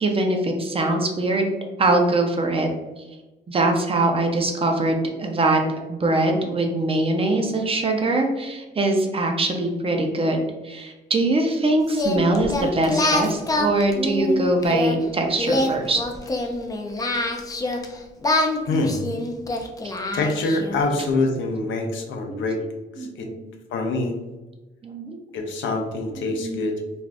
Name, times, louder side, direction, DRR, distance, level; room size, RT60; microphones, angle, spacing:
voice 1, 0.0-1.5 1.8-2.7 3.5-5.6 5.9-16.0 19.8-19.9 22.3-22.4 23.0-23.5 24.8-25.2 26.4-26.6, right 2 dB, 30° right, 3 dB, 0.6 m, -22 dB
Singing, 11.9-14.9 15.4-17.9 18.2-20.8, left 2 dB, 20° left, 0.4 m, -25 dB
voice 2, 18.7-19.0 20.1-22.6 23.0-23.3 23.7-24.2 25.3-26.8, left 2 dB, 75° left, 3 dB, 0.6 m, -25 dB
2.5 x 2.4 x 3.3 m, 1.1 s
cardioid pair, 90°, 20 cm